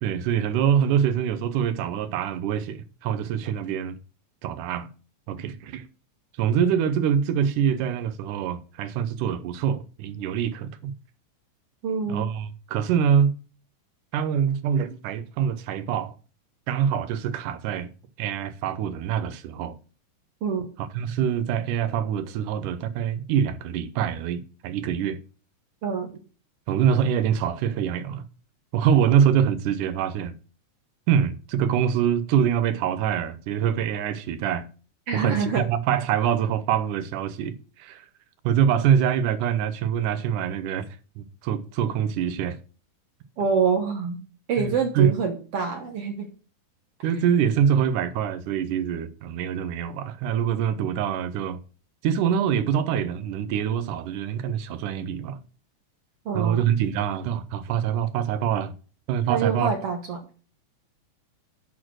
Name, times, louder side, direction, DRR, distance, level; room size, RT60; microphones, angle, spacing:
voice 1, 0.0-4.0 4.4-4.9 5.3-5.8 6.4-10.9 12.1-13.4 14.1-16.1 16.7-17.9 18.2-19.8 21.0-25.2 26.7-28.2 28.7-30.3 31.1-34.7 35.1-38.1 38.4-40.9 41.2-42.6 44.6-45.1 47.0-51.6 52.0-55.4 56.3-58.7 59.1-59.7, right 8 dB, 80° right, 2.3 m, -24 dB
voice 2, 11.8-12.3 20.4-20.7 25.8-26.1 35.1-35.6 43.4-44.2 44.5-46.3 56.2-56.6 59.3-60.2, right 6 dB, 60° right, 1.8 m, -26 dB
11.0 x 4.3 x 6.2 m
omnidirectional pair, 3.7 m